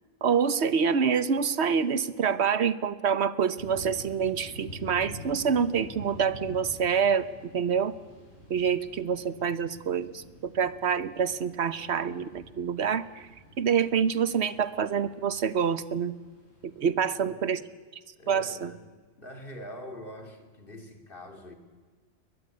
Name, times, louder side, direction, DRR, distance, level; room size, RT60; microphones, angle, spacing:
voice 1, 0.2-7.3 7.5-8.0 8.5-13.3 13.6-16.1 16.6-17.6 18.3-18.7, right 7 dB, 65° right, 15 dB, 1.3 m, -26 dB
sound 1, 3.6-16.9, equal, 65° left, 7.2 m, -47 dB
voice 2, 17.1-17.5 18.2-18.8 19.1-21.5, left 1 dB, 50° left, 6 dB, 2.9 m, -44 dB
22.0 x 20.5 x 9.6 m, 1.4 s
omnidirectional pair, 1.2 m